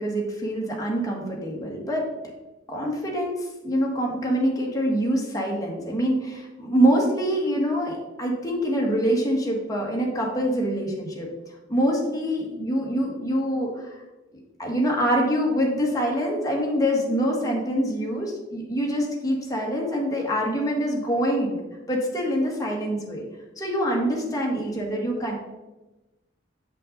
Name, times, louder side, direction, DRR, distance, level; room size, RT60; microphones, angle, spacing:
voice 1, 0.0-2.1 2.7-11.3 11.7-13.9 14.6-21.6 21.9-23.2 23.6-25.3, equal, 20° left, -2 dB, 1.5 m, -25 dB
7.1 x 5.5 x 3.9 m, 1.1 s
head